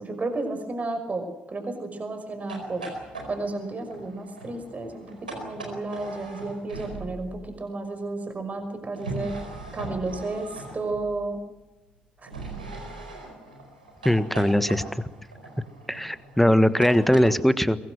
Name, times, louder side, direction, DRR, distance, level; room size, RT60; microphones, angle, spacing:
voice 1, 0.0-2.8 3.3-9.4 9.7-11.4 12.2-12.3, right 2 dB, 35° right, 7 dB, 5.7 m, -32 dB
sound 1, 2.4-7.4 8.9-11.2 12.3-17.3, right 2 dB, 85° right, 4.6 m, -40 dB
voice 2, 14.0-14.8 15.9-17.8, equal, 5° left, 15 dB, 1.5 m, -20 dB
23.0 x 21.5 x 7.7 m, 0.99 s
figure-of-eight pair, 40°, 5 cm